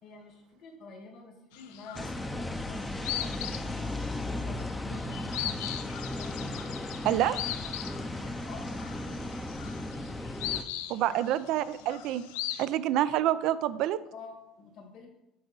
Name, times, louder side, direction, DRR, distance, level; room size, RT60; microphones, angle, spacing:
voice 1, 0.0-5.4 6.2-6.5 8.1-9.4 11.0-11.2 11.8-11.9 14.1-15.1, left 3 dB, 60° left, 2 dB, 1.9 m, -48 dB
sound 1, 1.5-2.4 2.7-12.7, left 11 dB, 85° left, 0.5 m, -39 dB
sound 2, 1.9-10.6, left 1 dB, 10° left, 0.6 m, -36 dB
voice 2, 7.0-7.4 10.9-12.2 12.6-14.0, right 12 dB, 65° right, 15 dB, 0.4 m, -27 dB
8.0 x 3.9 x 5.4 m, 0.89 s
supercardioid pair, 95°, 0 cm